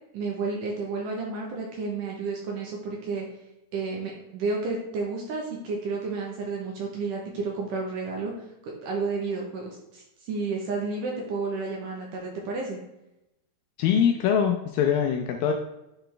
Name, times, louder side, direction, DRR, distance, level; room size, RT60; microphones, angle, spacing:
voice 1, 0.1-3.3 3.7-8.3 8.6-12.8, right 4 dB, 70° right, -1 dB, 2.2 m, -31 dB
voice 2, 13.8-15.5, left 8 dB, 80° left, 3 dB, 2.1 m, -23 dB
9.9 x 3.9 x 3.3 m, 0.89 s
omnidirectional pair, 4.6 m